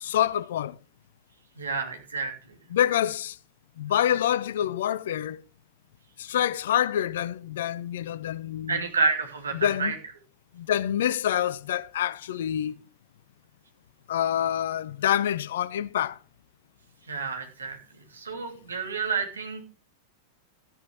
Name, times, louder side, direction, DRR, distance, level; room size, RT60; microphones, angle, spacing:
voice 1, 0.0-0.7 2.7-3.4 3.8-5.4 6.2-8.8 9.5-10.0 10.6-12.7 14.1-16.2, left 10 dB, 60° left, 0.6 m, -26 dB
voice 2, 1.6-2.4 8.7-9.9 17.1-17.8 18.1-19.7, right 4 dB, 75° right, 2.8 m, -29 dB
13.5 x 10.5 x 3.5 m
figure-of-eight pair, 90°, 0 cm